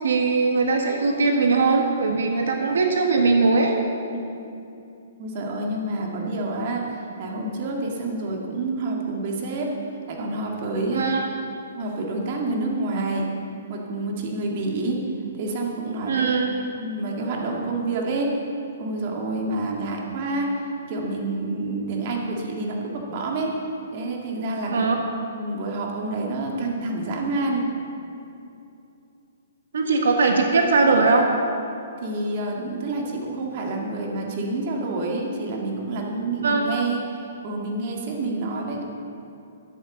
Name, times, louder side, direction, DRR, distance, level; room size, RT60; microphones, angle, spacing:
voice 1, 0.0-3.7 10.9-11.3 16.1-16.5 24.7-25.0 29.7-31.3 36.4-36.6, right 4 dB, 80° right, 2 dB, 1.4 m, -20 dB
voice 2, 4.1-4.5 5.2-9.7 10.1-11.0 11.7-13.3 13.7-15.0 15.4-18.4 18.8-23.5 23.9-24.9 25.3-27.7 32.0-38.8, right 2 dB, 40° right, 0 dB, 2.0 m, -28 dB
12.5 x 8.0 x 7.1 m, 2.7 s
hypercardioid pair, 160°, 0 cm